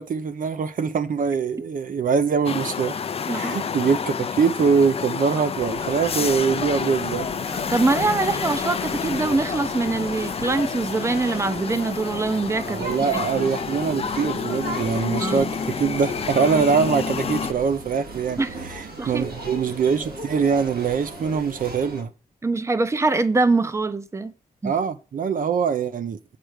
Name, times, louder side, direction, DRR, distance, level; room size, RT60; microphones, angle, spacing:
voice 1, 0.0-3.0 3.3-7.3 12.7-22.1 24.6-26.2, right 6 dB, 60° right, 0.6 m, -23 dB
sound 1, 2.4-17.5, left 6 dB, 40° left, 0.4 m, -29 dB
sound 2, 5.5-22.0, right 2 dB, 85° right, 2.6 m, -38 dB
voice 2, 7.7-13.1 15.2-15.5 18.4-18.5 19.0-19.2 22.4-24.3 24.6-24.7, right 3 dB, 20° right, 0.6 m, -23 dB
8.4 x 4.5 x 6.4 m
wide cardioid pair, 165°, 16 cm